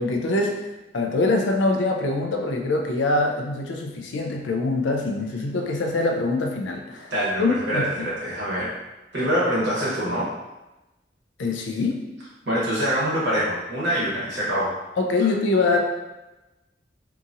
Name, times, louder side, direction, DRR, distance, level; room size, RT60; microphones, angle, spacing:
voice 1, 0.0-7.1 7.4-8.1 11.4-12.0 15.0-15.8, left 2 dB, 85° left, 2 dB, 0.4 m, -24 dB
voice 2, 7.1-8.7 9.1-10.3 12.5-14.7, equal, 70° right, -7 dB, 1.1 m, -24 dB
2.8 x 2.4 x 2.6 m, 1.0 s
head